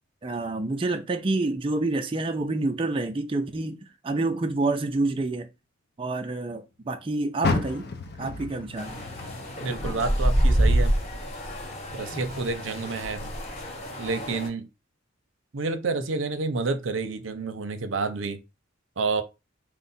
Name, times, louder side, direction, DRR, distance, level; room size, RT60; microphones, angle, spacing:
voice 1, 0.2-5.5 6.0-7.9 8.2-9.0, right 2 dB, 25° right, 0.4 m, -28 dB
Car, 7.4-10.7 11.1-12.4 12.9-13.0 13.6-13.7, left 3 dB, 50° left, 0.6 m, -32 dB
sound 1, 8.8-14.5, right 1 dB, 35° left, 1.2 m, -27 dB
voice 2, 9.6-10.9 11.9-13.3 14.0-14.7 15.5-18.4 19.0-19.2, right 4 dB, 75° right, 0.6 m, -29 dB
4.7 x 2.1 x 4.0 m
head